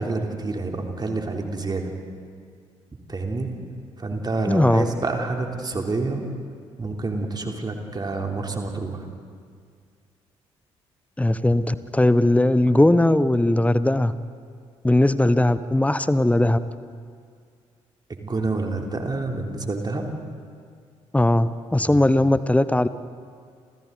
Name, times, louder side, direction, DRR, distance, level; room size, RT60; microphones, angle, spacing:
voice 1, 0.0-1.9 3.1-3.5 4.0-6.2 6.8-9.0 18.1-20.1 21.8-22.1, right 3 dB, 25° right, 2 dB, 3.4 m, -28 dB
voice 2, 4.5-4.9 11.2-14.1 14.8-16.6 21.1-22.9, left 1 dB, 10° left, 15 dB, 1.0 m, -19 dB
29.5 x 28.0 x 4.0 m, 2.2 s
figure-of-eight pair, 40°, 15 cm